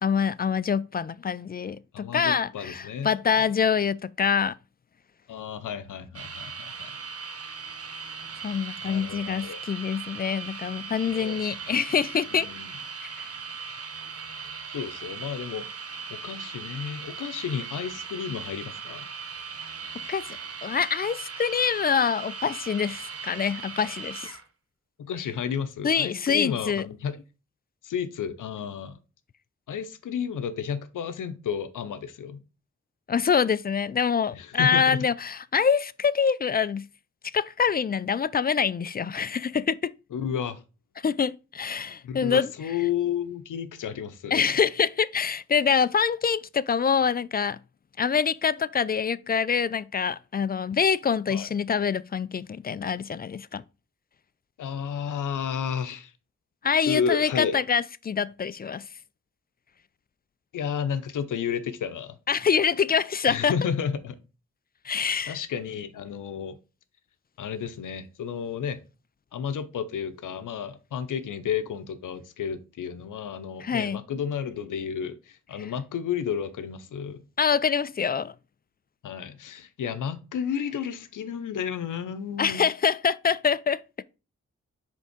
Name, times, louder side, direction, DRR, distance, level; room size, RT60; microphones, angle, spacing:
voice 1, 0.0-4.5 8.4-12.5 13.0-13.3 20.1-20.2 20.6-24.4 25.8-26.9 33.1-36.9 37.3-39.9 41.0-42.5 44.3-47.6 48.0-53.6 56.6-58.8 62.3-63.5 64.8-65.4 73.6-74.0 77.4-78.3 82.4-83.8, left 6 dB, 30° left, 0.4 m, -25 dB
voice 2, 1.9-3.5 5.3-6.9 8.8-9.6 11.1-11.5 12.3-12.7 14.7-15.7 16.1-19.1 25.0-27.2 27.8-29.0 29.7-32.4 34.3-35.1 40.1-40.6 42.0-44.5 51.3-51.5 54.6-56.1 56.9-57.6 60.5-62.2 63.3-64.2 64.9-66.6 67.4-68.8 69.3-77.2 79.0-82.6, left 7 dB, 85° left, 0.7 m, -32 dB
sound 1, 6.1-24.4, right 5 dB, 50° right, 0.9 m, -39 dB
5.1 x 3.6 x 5.0 m
cardioid pair, 45°, 30 cm